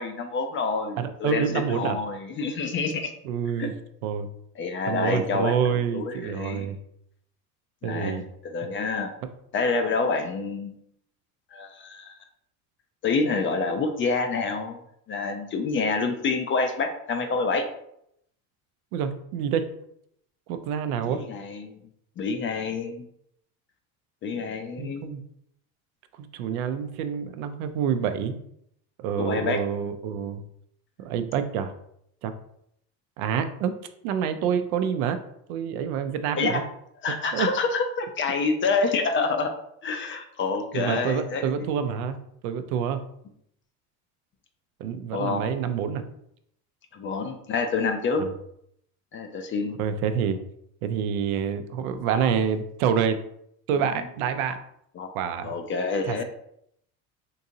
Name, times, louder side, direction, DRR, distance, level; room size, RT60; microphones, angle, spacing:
voice 1, 0.0-3.1 3.6-3.7 4.6-6.7 7.8-9.1 9.5-10.8 11.5-12.2 13.0-14.8 15.1-17.6 21.0-21.9 22.2-23.1 24.2-25.1 29.2-29.6 36.4-36.6 37.0-39.5 39.8-41.7 45.1-45.4 46.9-48.2 49.1-49.8 55.0-55.1 55.4-56.2, left 4 dB, 30° left, 6 dB, 0.4 m, -27 dB
voice 2, 1.0-2.0 3.2-3.7 4.0-4.3 4.9-6.8 7.8-8.2 18.9-19.7 20.5-21.2 24.8-25.2 26.2-28.4 29.0-30.4 31.0-31.7 32.2-32.3 33.2-33.7 34.0-35.2 35.5-36.6 37.3-37.5 40.7-43.0 44.8-46.0 48.2-48.3 49.8-50.4 50.8-53.2 53.7-54.6 55.1-55.5 56.1-56.2, right 7 dB, 80° right, 9 dB, 0.5 m, -27 dB
3.8 x 2.7 x 2.6 m, 0.73 s
supercardioid pair, 95°, 44 cm